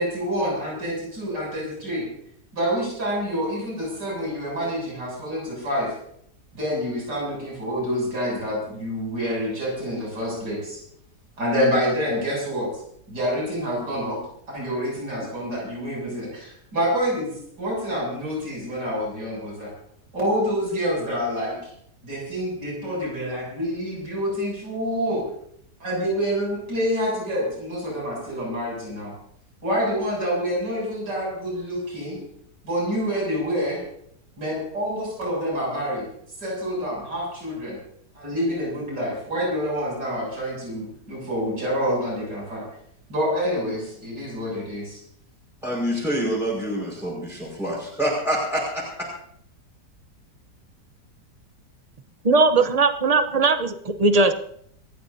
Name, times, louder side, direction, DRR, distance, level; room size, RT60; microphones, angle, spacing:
voice 1, 0.0-2.1 2.5-5.9 6.5-10.8 11.4-12.7 13.1-14.2 14.5-17.3 17.6-19.7 20.1-21.7 22.0-25.2 25.8-29.1 29.6-32.2 32.6-33.8 34.4-36.0 36.4-37.8 38.2-42.6 43.1-45.0, equal, 80° right, -3 dB, 8.6 m, -27 dB
voice 2, 45.6-49.1, equal, ahead, -6 dB, 5.4 m, -26 dB
voice 3, 52.2-54.3, right 3 dB, 30° right, 8 dB, 0.8 m, -19 dB
28.0 x 14.5 x 2.8 m, 0.69 s
omnidirectional pair, 1.8 m